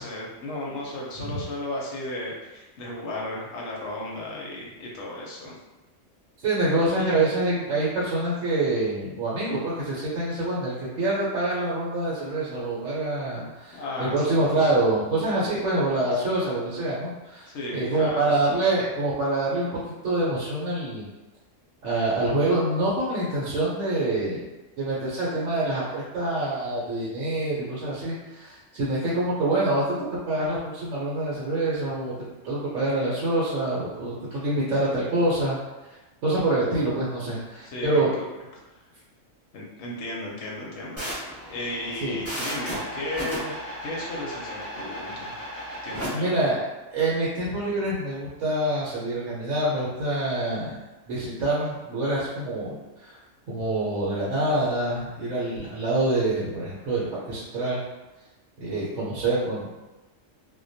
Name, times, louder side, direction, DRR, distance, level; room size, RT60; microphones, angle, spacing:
voice 1, 0.0-5.6 7.0-7.1 13.3-14.8 17.5-18.3 37.6-38.3 38.7-38.8 39.5-43.6 43.8-45.3 45.8-46.5, left 1 dB, 65° left, -3 dB, 0.8 m, -35 dB
voice 2, 6.4-19.7 20.0-21.1 21.8-24.4 24.8-30.0 30.3-32.1 32.4-35.6 36.2-38.1 42.0-42.2 46.1-46.6 46.9-50.8 51.1-53.2 53.5-57.8 58.6-59.8, right 2 dB, 75° right, -8 dB, 0.9 m, -26 dB
sound 1, 41.0-46.1, equal, 15° right, 0.8 m, -34 dB
2.2 x 2.2 x 2.6 m, 1.1 s
omnidirectional pair, 1.3 m